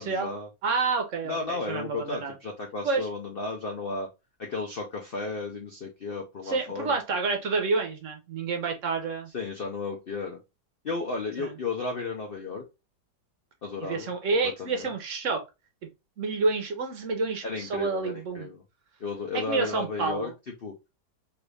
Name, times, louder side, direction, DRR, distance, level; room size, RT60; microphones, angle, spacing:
voice 1, 0.0-0.5 1.2-4.1 4.4-7.0 9.3-10.4 10.8-12.6 13.6-14.1 14.4-14.9 17.4-18.6 19.0-20.3 20.6-20.7, left 3 dB, 85° left, 0.5 m, -34 dB
voice 2, 0.6-2.3 2.8-3.1 6.5-9.3 11.4-11.5 13.8-15.4 16.2-18.5 19.5-20.3, right 4 dB, 60° right, 0.9 m, -29 dB
3.4 x 2.6 x 3.1 m
omnidirectional pair, 1.9 m